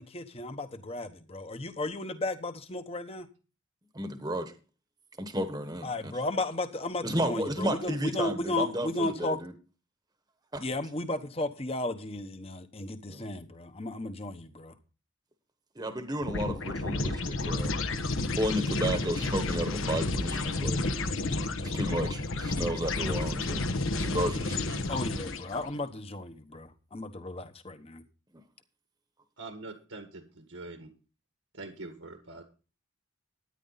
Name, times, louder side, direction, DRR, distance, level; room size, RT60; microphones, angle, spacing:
voice 1, 0.0-3.3 5.8-9.4 10.6-14.7 24.9-28.0, left 2 dB, 30° left, 1.1 m, -34 dB
voice 2, 3.9-4.5 5.2-6.2 7.0-9.5 10.5-10.6 13.1-13.2 15.8-17.7 18.3-20.8 21.6-23.6 24.0-24.9, equal, 20° right, 1.1 m, -33 dB
sound 1, 16.2-25.7, left 2 dB, 70° left, 1.2 m, -31 dB
voice 3, 29.4-30.9 31.6-32.4, right 2 dB, 75° right, 1.6 m, -44 dB
13.0 x 10.0 x 4.0 m
head